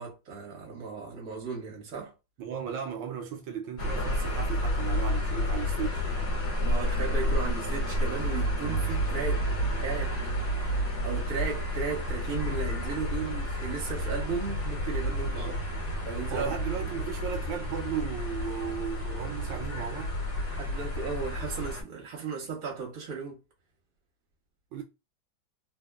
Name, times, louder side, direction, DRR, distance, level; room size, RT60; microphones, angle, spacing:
voice 1, 0.0-2.1 6.6-9.5 9.8-10.2 10.4-15.6 16.0-16.5 20.4-23.4, right 5 dB, 55° right, 1.5 m, -36 dB
voice 2, 2.4-6.0 15.3-15.6 16.3-20.1 24.7-24.8, right 8 dB, 90° right, 1.3 m, -36 dB
sound 1, 3.8-21.8, equal, 60° left, 1.5 m, -30 dB
3.3 x 2.1 x 2.2 m
omnidirectional pair, 2.0 m